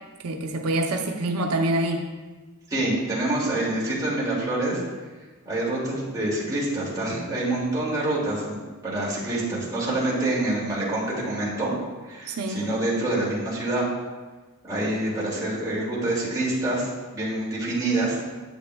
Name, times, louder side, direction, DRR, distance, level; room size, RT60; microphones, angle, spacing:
voice 1, 0.2-2.1 12.3-12.7, right 1 dB, 90° right, 3 dB, 0.6 m, -26 dB
voice 2, 2.7-4.8 5.5-8.6 8.8-11.7 12.1-13.9 14.6-18.2, right 2 dB, 15° right, -6 dB, 2.2 m, -26 dB
10.0 x 7.8 x 2.2 m, 1.3 s
head